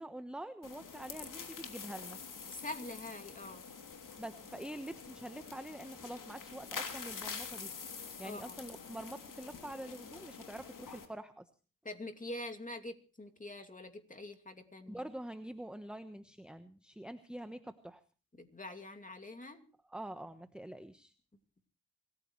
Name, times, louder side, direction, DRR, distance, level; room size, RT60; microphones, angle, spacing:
voice 1, 0.0-2.2 4.2-7.7 8.2-11.5 14.9-18.0 19.8-21.1, right 1 dB, ahead, 9 dB, 1.1 m, -46 dB
sound 1, 0.6-11.1, left 6 dB, 55° left, 3.1 m, -46 dB
voice 2, 2.5-3.6 8.2-8.6 11.8-15.0 18.4-19.6, left 2 dB, 20° left, 5 dB, 2.7 m, -45 dB
25.5 x 15.0 x 3.2 m, 0.36 s
supercardioid pair, 50°, 39 cm